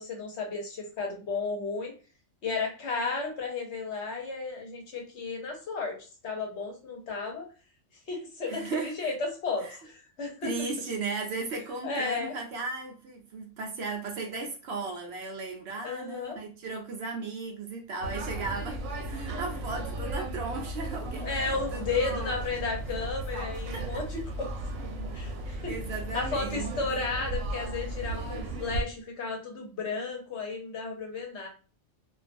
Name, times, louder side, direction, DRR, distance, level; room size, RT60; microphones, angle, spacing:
voice 1, 0.0-1.9 2.4-7.5 8.1-10.5 11.8-12.3 15.8-16.4 21.2-24.5 25.1-25.3 25.6-25.7 26.1-31.5, left 4 dB, 65° left, 1.0 m, -33 dB
voice 2, 8.5-9.1 9.6-9.8 10.4-22.4 23.7-23.8 25.4-26.7, right 3 dB, 65° right, 0.7 m, -36 dB
sound 1, 18.0-28.8, right 1 dB, 90° right, 1.0 m, -35 dB
2.5 x 2.3 x 2.5 m
omnidirectional pair, 1.3 m